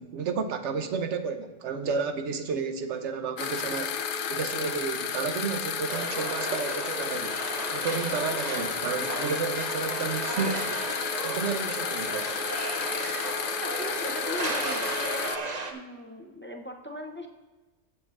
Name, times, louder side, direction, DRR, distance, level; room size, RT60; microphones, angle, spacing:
voice 1, 0.0-3.9 4.3-7.4 7.7-10.7 11.2-12.3, right 5 dB, 70° right, 8 dB, 1.1 m, -32 dB
sound 1, 3.4-15.4, left 6 dB, 55° left, 0.6 m, -32 dB
sound 2, 5.9-15.7, right 3 dB, 40° right, 0.8 m, -35 dB
voice 2, 13.6-15.4 15.7-17.3, equal, 15° left, 2 dB, 0.5 m, -38 dB
17.5 x 7.1 x 2.5 m, 1.2 s
omnidirectional pair, 1.3 m